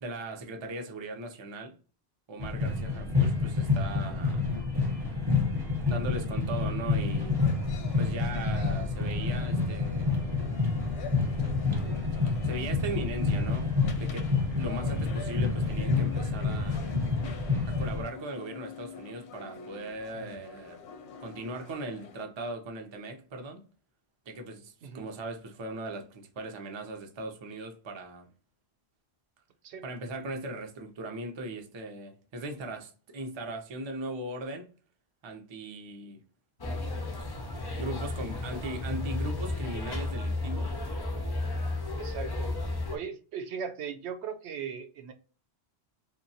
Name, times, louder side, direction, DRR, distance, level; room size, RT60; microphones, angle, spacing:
voice 1, 0.0-1.8 2.3-4.5 5.9-7.4 8.0-10.2 12.4-16.8 17.7-20.8 21.2-23.6 24.3-28.3 29.8-34.7 35.2-36.2 37.8-40.7, right 2 dB, 40° right, 0.4 m, -39 dB
sound 1, 2.4-18.0, left 4 dB, 25° right, 0.8 m, -28 dB
sound 2, 7.0-22.2, left 5 dB, 90° left, 0.9 m, -46 dB
sound 3, 36.6-43.0, left 2 dB, 40° left, 0.3 m, -33 dB
voice 2, 42.0-42.5 42.9-45.1, right 7 dB, 85° right, 0.9 m, -38 dB
3.0 x 2.2 x 2.6 m
omnidirectional pair, 1.1 m